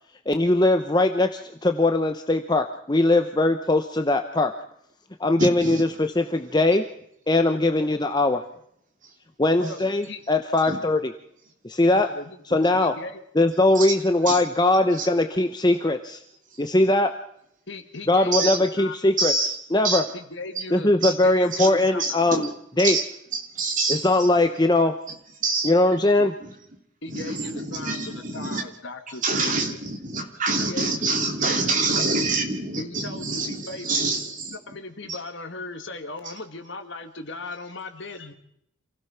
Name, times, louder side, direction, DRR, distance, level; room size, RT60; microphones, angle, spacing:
voice 1, 0.3-4.5 5.2-6.8 7.3-8.4 9.4-11.1 11.6-12.1 12.5-12.9 13.3-16.2 16.6-17.1 18.1-19.3 19.7-20.0 20.7-22.5 22.8-23.0 23.9-24.9 25.6-26.3, left 2 dB, 20° left, 6 dB, 0.9 m, -20 dB
voice 2, 5.4-5.8 10.7-10.8 13.7-14.0 14.2-14.4 15.0-15.1 18.3-18.7 19.2-19.6 19.8-20.0 20.5-20.6 21.0-21.2 21.5-21.7 22.0-22.5 22.8-24.1 25.4-25.7 26.4-26.5 27.1-28.6 29.2-34.6, right 3 dB, 40° right, 3 dB, 3.3 m, -26 dB
voice 3, 9.6-10.2 11.9-12.4 12.7-13.2 17.7-19.0 20.1-22.0 27.0-30.2 30.6-31.1 31.4-32.1 32.8-33.9 34.7-38.3, left 2 dB, 60° left, 7 dB, 2.2 m, -38 dB
27.5 x 16.5 x 5.8 m, 0.73 s
head